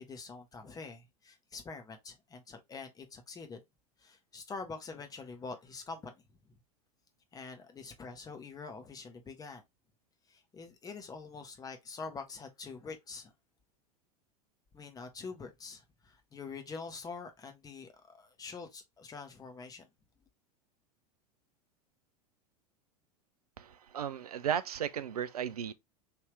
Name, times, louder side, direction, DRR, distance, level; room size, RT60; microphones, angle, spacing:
voice 1, 0.0-3.6 4.0-6.2 7.3-9.6 10.3-13.3 14.7-19.9, left 4 dB, 20° left, 0.9 m, -45 dB
voice 2, 23.6-25.7, right 9 dB, 75° right, 0.4 m, -35 dB
3.4 x 2.8 x 3.2 m
figure-of-eight pair, 85°, 20 cm